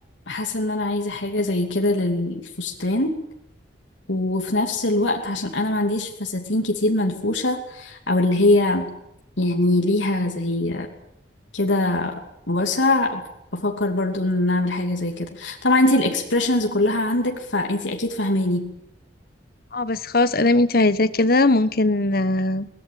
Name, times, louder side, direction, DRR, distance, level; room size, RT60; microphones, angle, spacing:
voice 1, 0.3-3.2 4.1-9.0 9.4-10.9 11.5-13.2 13.5-18.7, left 2 dB, 80° left, 3 dB, 2.8 m, -22 dB
voice 2, 19.7-22.7, left 2 dB, 55° left, 14 dB, 1.3 m, -19 dB
23.0 x 19.0 x 9.2 m, 0.79 s
head